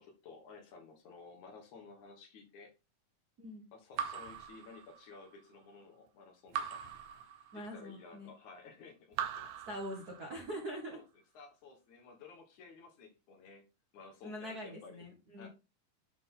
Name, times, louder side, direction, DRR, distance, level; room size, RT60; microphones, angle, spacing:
voice 1, 0.0-2.7 3.7-6.8 7.5-9.5 10.9-11.0 11.3-13.6 13.9-15.0 15.4-15.5, left 4 dB, 65° left, 3 dB, 2.6 m, -54 dB
Raindrop / Drip, 4.0-5.3 6.5-7.9 9.1-10.5, right 8 dB, 80° right, 2.3 m, -41 dB
voice 2, 7.5-8.3 9.7-11.0 14.2-15.5, equal, 50° right, 0 dB, 1.1 m, -43 dB
10.5 x 3.8 x 3.8 m, 0.29 s
omnidirectional pair, 3.8 m